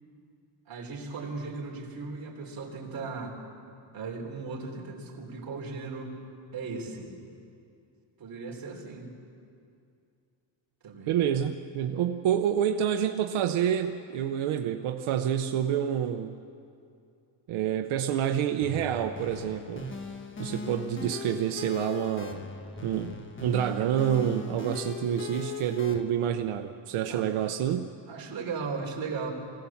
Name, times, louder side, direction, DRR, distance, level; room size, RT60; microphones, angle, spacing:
voice 1, 0.7-3.4 3.9-6.1 6.5-7.1 8.2-9.1 10.8-11.1 27.1-27.3 28.1-29.3, right 4 dB, 45° right, -1 dB, 3.6 m, -37 dB
voice 2, 11.1-16.4 17.5-19.9 20.4-22.4 22.8-27.9, right 9 dB, 90° right, 6 dB, 0.9 m, -28 dB
sound 1, 18.6-26.0, left 5 dB, 25° left, 1.3 m, -39 dB
24.5 x 17.0 x 7.1 m, 2.5 s
cardioid pair, 155°, 47 cm